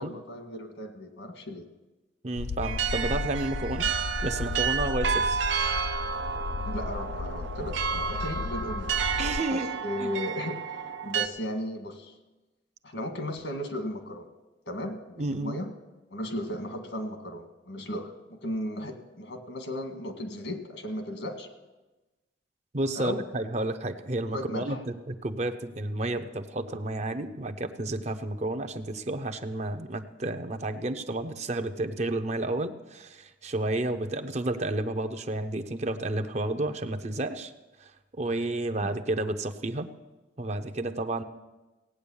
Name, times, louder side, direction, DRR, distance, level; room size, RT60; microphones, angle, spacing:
voice 1, 0.0-1.7 6.7-8.9 9.5-12.1 12.8-14.3 14.7-15.7 16.1-21.5 22.9-23.3 24.3-24.8 38.8-39.0, left 1 dB, 80° left, 5 dB, 1.8 m, -36 dB
voice 2, 2.2-3.9 4.2-5.4 9.2-9.7 10.0-10.2 15.2-15.6 22.7-37.5 37.8-39.9 40.4-41.2, right 2 dB, 40° right, 9 dB, 0.7 m, -31 dB
sound 1, 2.4-9.4, left 4 dB, 50° left, 0.4 m, -34 dB
sound 2, 2.6-11.3, right 6 dB, 90° right, 0.7 m, -31 dB
17.0 x 9.0 x 7.1 m, 1.1 s
head